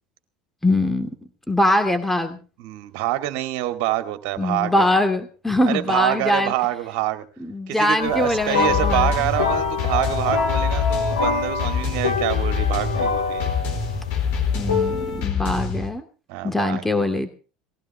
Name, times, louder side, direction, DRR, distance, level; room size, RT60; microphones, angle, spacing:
voice 1, 0.6-1.1 1.5-2.4 4.4-6.5 7.4-9.1 14.5-16.0 16.4-17.3, left 1 dB, 5° left, 7 dB, 2.5 m, -22 dB
voice 2, 2.6-4.9 5.7-7.2 7.7-13.5 16.3-16.8, right 15 dB, 55° right, 8 dB, 2.3 m, -26 dB
sound 1, 8.0-15.2, left 4 dB, 80° left, 3.7 m, -25 dB
sound 2, 8.7-15.9, left 6 dB, 55° left, 4.8 m, -26 dB
20.0 x 16.0 x 3.4 m, 0.36 s
figure-of-eight pair, 70°, 4 cm